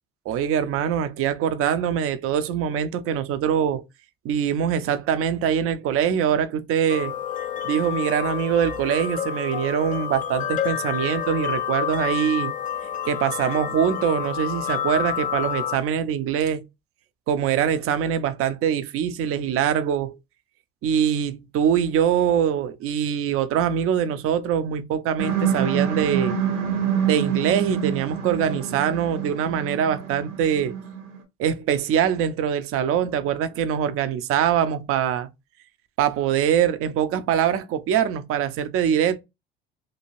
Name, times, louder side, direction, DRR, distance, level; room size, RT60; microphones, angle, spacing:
voice 1, 0.3-3.8 4.2-7.1 7.6-12.5 13.1-16.6 17.3-20.2 20.8-26.4 27.1-30.7 31.4-35.3 36.0-39.2, right 9 dB, 50° right, 0.5 m, -23 dB
sound 1, 6.9-15.8, left 9 dB, 30° left, 0.4 m, -29 dB
sound 2, 25.2-31.2, right 7 dB, 70° right, 1.0 m, -26 dB
2.7 x 2.4 x 3.0 m
hypercardioid pair, 65°, 29 cm